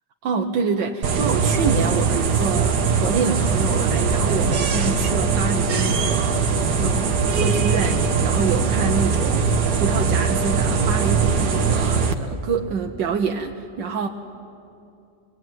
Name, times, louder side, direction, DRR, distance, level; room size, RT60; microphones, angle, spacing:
voice 1, 0.2-14.1, right 5 dB, 85° right, 2 dB, 1.7 m, -27 dB
sound 1, 1.0-12.1, right 5 dB, 65° right, 1.9 m, -21 dB
25.0 x 21.5 x 9.3 m, 2.6 s
omnidirectional pair, 1.9 m